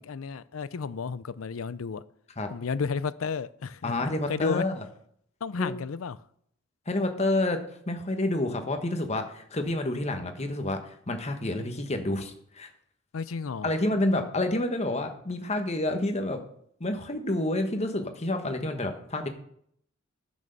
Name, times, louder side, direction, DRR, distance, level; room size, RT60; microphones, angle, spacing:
voice 1, 0.0-2.0 2.5-4.7 5.4-6.2 13.1-13.7, left 5 dB, 80° left, 0.5 m, -32 dB
voice 2, 3.8-4.7 5.6-5.7 6.9-12.7 13.6-16.4 16.8-19.3, left 1 dB, 30° left, 1.3 m, -29 dB
10.5 x 6.4 x 6.7 m
head